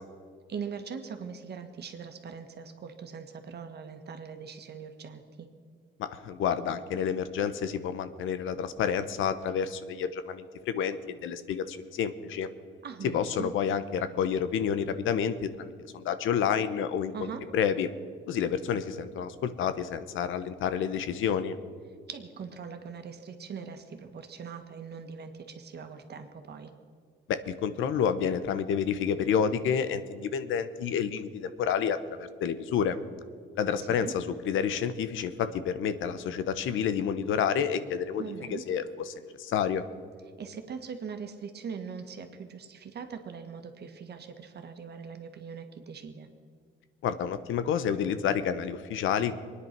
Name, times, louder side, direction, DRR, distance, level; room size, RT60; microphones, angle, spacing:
voice 1, 0.5-5.5 12.8-13.5 17.1-17.4 22.1-26.7 33.8-34.1 38.2-38.6 40.4-46.3, right 6 dB, 55° right, 6 dB, 1.7 m, -41 dB
voice 2, 6.0-12.5 13.0-17.9 18.3-21.6 27.3-33.0 33.5-39.8 47.0-49.3, left 7 dB, 80° left, 12 dB, 0.9 m, -29 dB
23.5 x 9.9 x 6.0 m, 2.1 s
cardioid pair, 90°, 20 cm